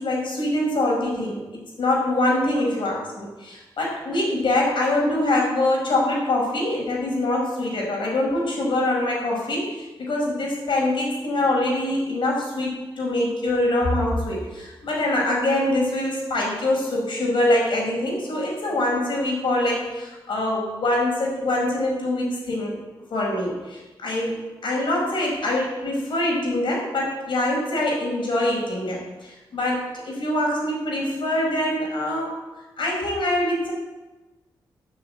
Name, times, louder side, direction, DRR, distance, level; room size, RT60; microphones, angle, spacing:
voice 1, 0.0-22.8 23.1-24.3 24.6-32.3 32.8-33.7, left 1 dB, 70° left, -2 dB, 5.4 m, -24 dB
14.5 x 6.3 x 8.8 m, 1.1 s
cardioid pair, 70°, 9 cm